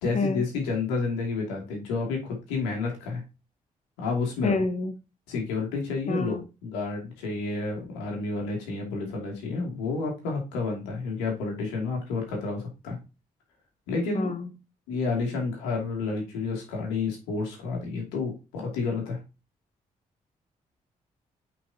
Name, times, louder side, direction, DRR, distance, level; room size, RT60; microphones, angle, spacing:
voice 1, 0.0-3.2 4.0-4.6 5.3-13.0 13.9-14.3 14.9-19.2, left 4 dB, 85° left, 2.5 m, -30 dB
voice 2, 4.4-4.9 6.1-6.4 14.1-14.5, left 3 dB, 40° left, 1.1 m, -27 dB
8.8 x 5.4 x 2.8 m
hypercardioid pair, 45°, 18 cm